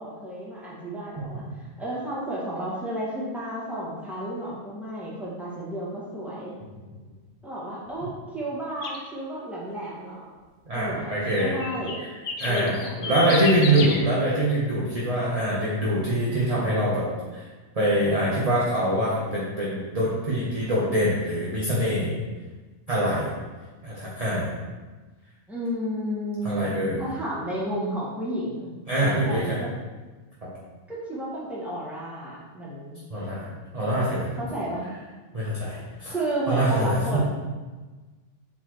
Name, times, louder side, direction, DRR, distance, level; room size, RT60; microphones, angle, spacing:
voice 1, 0.0-6.5 7.4-10.3 10.7-11.1 11.4-12.0 12.5-13.8 25.5-28.7 29.0-29.7 30.9-33.0 34.4-34.9 36.1-37.2, right 1 dB, ahead, -8 dB, 1.6 m, -32 dB
sound 1, 8.8-9.0 11.3-14.0, left 4 dB, 55° left, 0.8 m, -32 dB
voice 2, 10.7-11.6 12.4-17.1 17.3-17.4 17.7-22.1 22.9-23.3 23.8-24.5 26.4-27.0 28.9-29.6 30.4-30.5 33.1-34.3 35.3-36.1 36.5-37.0, right 1 dB, 30° right, -7 dB, 1.0 m, -24 dB
7.6 x 4.1 x 3.1 m, 1.3 s
omnidirectional pair, 1.5 m